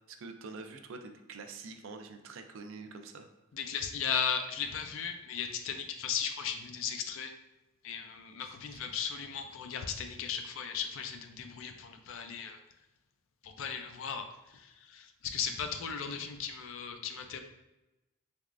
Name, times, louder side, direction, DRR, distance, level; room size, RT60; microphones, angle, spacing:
voice 1, 0.1-3.3 8.4-8.8, right 4 dB, 65° right, 6 dB, 0.4 m, -46 dB
voice 2, 3.5-7.3 7.8-12.6 13.4-17.4, left 7 dB, 65° left, 5 dB, 0.4 m, -36 dB
3.5 x 3.1 x 2.4 m, 0.99 s
head